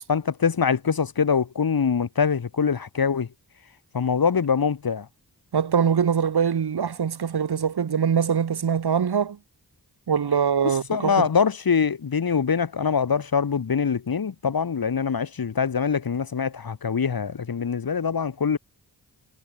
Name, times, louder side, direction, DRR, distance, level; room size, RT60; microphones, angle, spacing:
voice 1, 0.1-3.3 3.9-5.1 10.9-18.6, left 6 dB, 55° left, 1.1 m, -24 dB
voice 2, 5.5-9.4 10.1-11.3, right 7 dB, 60° right, 1.0 m, -23 dB
cardioid pair, 45°, 43 cm